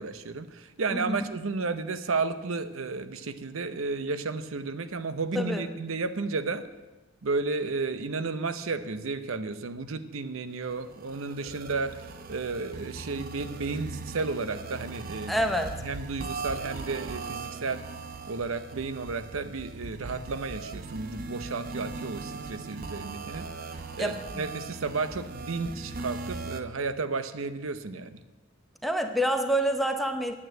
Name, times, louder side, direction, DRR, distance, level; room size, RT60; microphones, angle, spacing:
voice 1, 0.0-6.6 7.2-15.4 15.8-17.8 18.3-23.5 24.0-28.2, right 4 dB, 85° right, 12 dB, 0.7 m, -32 dB
voice 2, 5.3-5.7 15.3-15.8 24.0-24.4 28.8-30.3, equal, ahead, 5 dB, 0.8 m, -27 dB
sound 1, 10.6-26.6, right 3 dB, 45° right, 0.8 m, -39 dB
9.4 x 8.5 x 7.7 m, 1.1 s
head